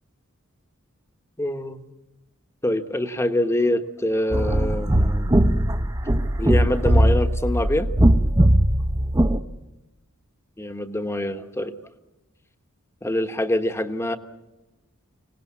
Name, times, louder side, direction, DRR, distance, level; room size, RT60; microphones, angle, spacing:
voice 1, 1.4-1.8 2.6-5.3 6.4-7.9 10.6-11.7 13.0-14.2, left 1 dB, 15° left, 8 dB, 1.2 m, -25 dB
sound 1, 4.3-9.4, right 1 dB, 15° right, 0.8 m, -19 dB
25.5 x 18.5 x 8.4 m, 1.0 s
head